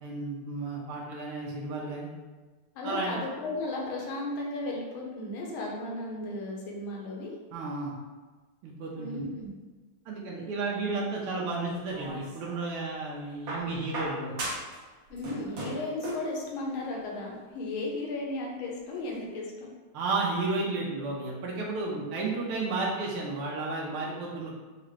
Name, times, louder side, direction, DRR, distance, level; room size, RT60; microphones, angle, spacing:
voice 1, 0.0-2.1 2.8-3.2 7.5-7.9 8.6-9.2 10.1-14.3 19.9-24.5, right 3 dB, 80° right, -3 dB, 1.5 m, -32 dB
voice 2, 2.8-7.3 9.0-9.5 15.1-19.7, left 2 dB, 70° left, -1 dB, 1.6 m, -35 dB
sound 1, 11.7-12.7 13.5-14.8 15.1-16.3 17.4-17.5, right 1 dB, 55° right, 1.2 m, -37 dB
5.9 x 2.4 x 3.2 m, 1.3 s
omnidirectional pair, 2.4 m